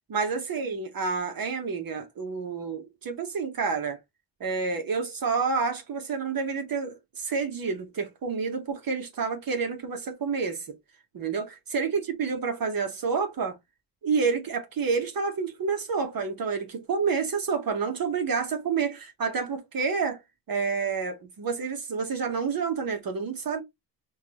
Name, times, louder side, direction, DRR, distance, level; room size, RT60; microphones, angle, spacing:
voice 1, 0.1-4.0 4.4-10.7 11.1-13.6 14.0-20.2 20.5-23.6, right 5 dB, 50° right, 0.9 m, -29 dB
4.5 x 2.3 x 2.8 m
cardioid pair, 70°, 44 cm